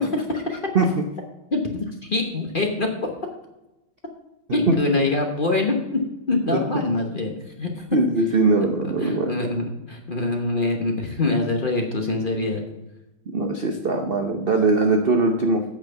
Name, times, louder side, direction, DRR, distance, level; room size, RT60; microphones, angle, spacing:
voice 1, 0.1-0.6 1.5-1.6 2.0-3.1 4.5-7.3 7.6-7.8 9.0-12.6, left 2 dB, 35° left, 2 dB, 0.9 m, -24 dB
voice 2, 7.9-9.3 13.3-15.6, right 3 dB, 70° right, 4 dB, 0.5 m, -21 dB
8.5 x 6.3 x 6.8 m, 0.96 s
omnidirectional pair, 2.3 m